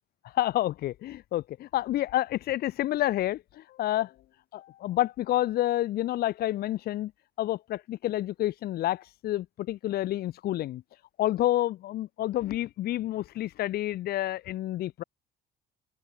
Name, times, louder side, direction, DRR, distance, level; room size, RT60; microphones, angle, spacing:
voice 1, 0.2-4.1 4.5-7.1 7.4-15.0, left 14 dB, 65° left, 1.0 m, -29 dB
open air
cardioid pair, 110°, 17 cm